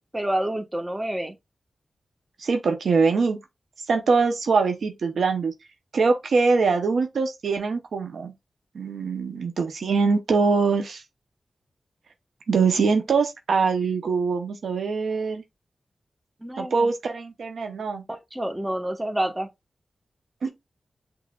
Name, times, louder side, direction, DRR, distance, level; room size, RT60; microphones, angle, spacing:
voice 1, 0.0-1.3 16.4-16.9 18.1-19.5, right 1 dB, 15° right, 1.1 m, -28 dB
voice 2, 2.4-3.4 3.9-5.5 5.9-8.3 8.7-11.0 12.5-15.4 16.6-18.0 20.4-20.5, right 4 dB, 90° right, 0.7 m, -23 dB
6.0 x 3.1 x 2.3 m
cardioid pair, 60°, 0 cm